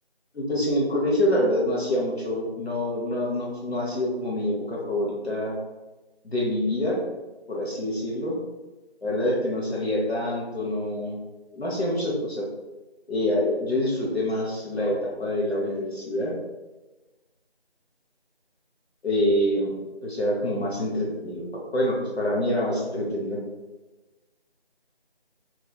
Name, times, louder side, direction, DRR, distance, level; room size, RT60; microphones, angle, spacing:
voice 1, 0.3-5.5 6.2-7.0 7.5-8.3 9.0-11.2 11.5-12.4 13.1-16.3 19.0-23.4, left 1 dB, 75° left, -4 dB, 1.0 m, -26 dB
3.0 x 2.9 x 2.3 m, 1.1 s
figure-of-eight pair, 180°, 33 cm